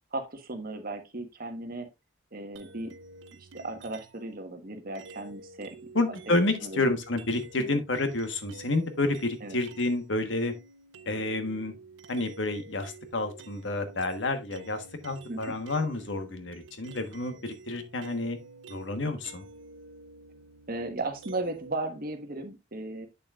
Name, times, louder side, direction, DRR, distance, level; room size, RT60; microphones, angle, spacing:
voice 1, 0.1-1.9 2.3-2.9 3.3-5.8 6.6-6.9 7.6-7.7 9.4-9.6 15.3-15.6 20.7-23.1, right 2 dB, 50° right, 1.4 m, -36 dB
sound 1, 2.5-4.3 4.9-10.0 10.3-21.8, right 4 dB, 80° right, 0.8 m, -50 dB
voice 2, 5.9-10.5 11.0-11.7 12.1-18.4 18.7-19.5, left 2 dB, 75° left, 1.4 m, -29 dB
8.4 x 6.8 x 2.4 m
head